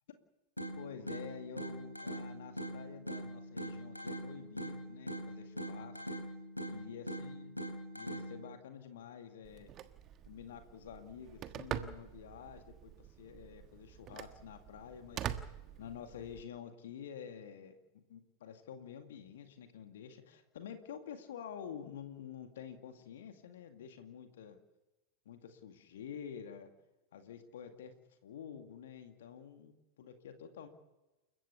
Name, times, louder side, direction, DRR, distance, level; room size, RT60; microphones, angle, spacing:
sound 1, 0.6-8.6, right 1 dB, 90° left, 3.6 m, -43 dB
voice 1, 0.8-6.0 6.7-7.5 7.9-9.7 10.3-15.2 15.8-24.6 25.3-26.7 27.1-27.9 28.2-30.7, left 8 dB, 60° left, 7 dB, 2.2 m, -49 dB
Telephone, 9.4-16.4, right 10 dB, 30° right, 1.4 m, -45 dB
29.0 x 15.5 x 7.0 m, 1.1 s
figure-of-eight pair, 90°, 0 cm